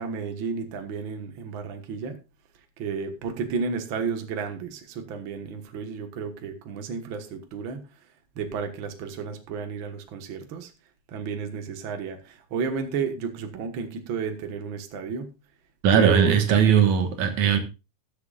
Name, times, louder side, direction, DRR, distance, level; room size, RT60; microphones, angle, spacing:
voice 1, 0.0-2.2 2.8-7.9 8.4-10.7 11.1-15.3 15.9-16.8 17.4-17.6, right 6 dB, 50° right, 6 dB, 1.9 m, -32 dB
voice 2, 15.8-17.6, right 7 dB, 80° right, 6 dB, 2.7 m, -19 dB
20.5 x 7.6 x 2.4 m, 0.28 s
omnidirectional pair, 3.3 m